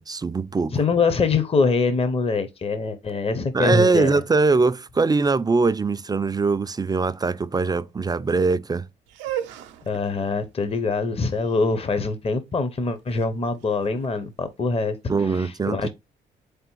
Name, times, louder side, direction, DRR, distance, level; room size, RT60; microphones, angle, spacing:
voice 1, 0.0-0.7 3.5-8.9 15.1-15.9, right 4 dB, 20° right, 0.3 m, -22 dB
voice 2, 0.7-4.1 9.9-15.9, left 4 dB, 30° left, 0.7 m, -24 dB
sound 1, 9.1-15.0, right 11 dB, 85° right, 0.5 m, -38 dB
3.8 x 3.4 x 3.0 m
supercardioid pair, 55°, 19 cm